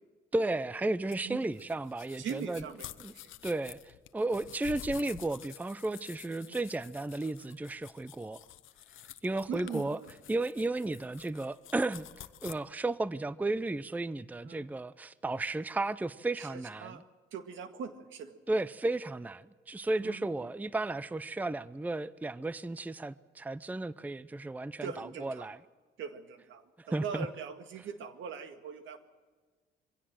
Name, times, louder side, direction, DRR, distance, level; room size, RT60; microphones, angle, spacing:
voice 1, 0.3-2.6 3.0-3.1 3.4-8.4 9.2-10.0 10.3-17.0 18.5-25.6 26.8-27.3, right 2 dB, 10° right, 0.5 m, -34 dB
sound 1, 1.1-12.5, left 13 dB, 80° left, 0.9 m, -50 dB
voice 2, 2.2-3.3 6.4-6.6 9.5-10.1 14.4-14.7 16.4-17.0 17.3-18.4 20.0-20.5 24.8-25.5 26.0-29.0, right 7 dB, 75° right, 1.9 m, -42 dB
23.5 x 16.5 x 7.6 m
cardioid pair, 90°, 20 cm